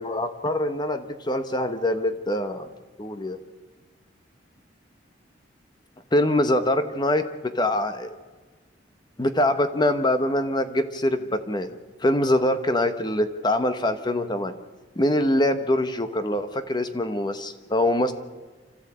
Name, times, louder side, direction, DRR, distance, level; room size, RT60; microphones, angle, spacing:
voice 1, 0.0-2.7 3.0-3.4 6.1-8.2 9.2-14.6 15.0-18.1, left 1 dB, 25° left, 9 dB, 1.1 m, -24 dB
27.0 x 14.0 x 8.7 m, 1.4 s
head